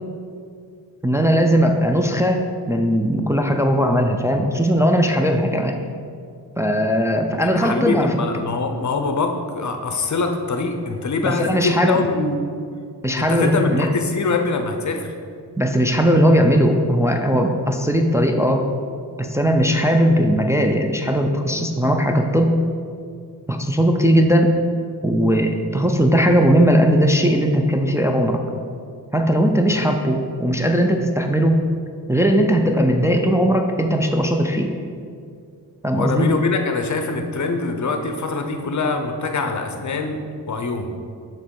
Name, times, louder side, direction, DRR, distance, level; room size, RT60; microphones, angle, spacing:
voice 1, 1.0-5.8 6.6-8.2 11.2-12.0 13.0-13.9 15.6-18.7 19.2-22.6 23.5-24.6 25.0-28.4 29.1-31.6 32.1-34.7 35.8-36.3, equal, 5° right, 3 dB, 0.3 m, -18 dB
voice 2, 7.4-12.4 13.2-15.1 29.8-30.0 35.9-40.9, left 3 dB, 45° left, 5 dB, 0.6 m, -24 dB
6.5 x 3.1 x 4.6 m, 2.3 s
wide cardioid pair, 65°, 42 cm